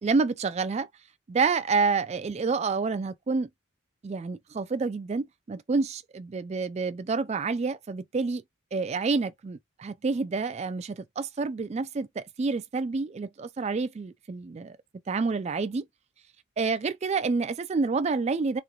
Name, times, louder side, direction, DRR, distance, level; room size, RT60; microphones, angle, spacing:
voice 1, 0.0-0.9 1.3-3.5 4.0-8.4 8.7-14.7 15.1-15.8 16.6-18.6, right 4 dB, 30° right, 0.3 m, -28 dB
3.1 x 2.4 x 2.3 m
head